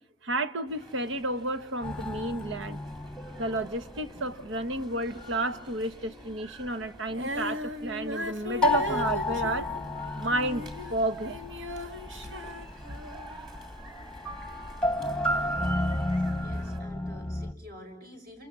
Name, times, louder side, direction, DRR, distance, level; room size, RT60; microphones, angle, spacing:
voice 1, 0.2-2.8 3.4-9.9 10.2-11.4 12.2-12.3, right 2 dB, 90° right, 1.2 m, -31 dB
sound 1, 0.7-16.8, right 1 dB, 25° right, 3.4 m, -50 dB
sound 2, 1.8-6.5 6.8-7.9 8.4-17.5, left 2 dB, 5° left, 1.0 m, -33 dB
Female singing, 7.1-13.5 14.1-14.2, left 1 dB, 75° right, 2.0 m, -38 dB
voice 2, 16.4-18.5, left 1 dB, 55° right, 5.7 m, -48 dB
29.5 x 25.5 x 7.3 m
head